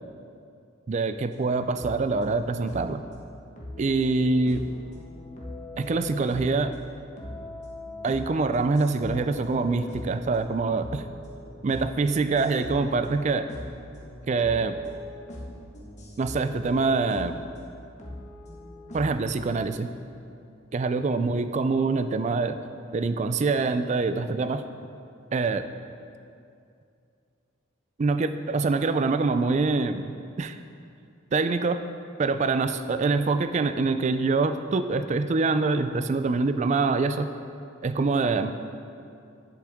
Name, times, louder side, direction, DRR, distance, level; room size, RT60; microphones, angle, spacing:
voice 1, 0.9-3.0 3.8-4.6 5.8-6.7 8.0-11.0 11.6-13.5 14.3-14.8 16.2-17.4 18.9-19.9 20.7-22.6 22.9-24.7 25.3-25.7 28.0-30.0 30.4-30.6 31.3-31.8 32.2-37.3 37.8-38.6, right 3 dB, 35° right, 10 dB, 0.3 m, -25 dB
sound 1, 1.3-3.0 3.6-6.8 7.2-17.6 18.0-19.7, left 1 dB, 35° left, 1.3 m, -41 dB
10.5 x 7.7 x 3.6 m, 2.5 s
head